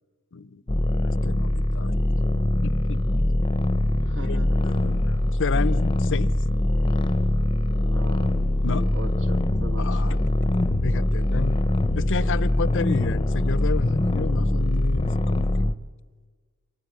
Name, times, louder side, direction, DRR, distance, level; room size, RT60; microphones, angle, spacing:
voice 1, 0.3-1.9 2.6-3.2 4.2-4.4 4.6-6.3 8.6-8.9 9.8-10.3 10.8-11.6 11.9-15.7, left 4 dB, 60° left, 17 dB, 0.7 m, -31 dB
sound 1, 0.7-15.7, left 1 dB, 20° left, 0.8 m, -23 dB
voice 2, 4.0-4.8 7.8-8.4 8.7-10.0, right 1 dB, 55° right, 6 dB, 2.1 m, -39 dB
25.0 x 23.5 x 9.6 m, 1.4 s
head